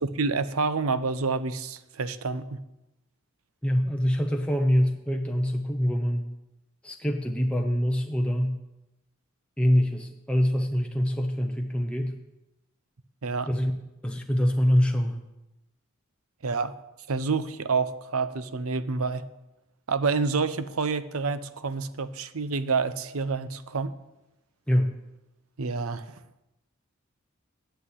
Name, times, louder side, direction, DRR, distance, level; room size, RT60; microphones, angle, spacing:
voice 1, 0.0-2.6 13.2-13.5 16.4-16.7 17.1-19.2 19.9-23.9 25.6-26.2, right 4 dB, 80° right, 13 dB, 0.7 m, -28 dB
voice 2, 3.6-6.3 6.8-8.6 9.6-12.2 13.5-13.7 14.0-15.2 24.7-24.9, equal, 5° left, 2 dB, 0.7 m, -25 dB
10.0 x 7.9 x 8.1 m, 0.97 s
head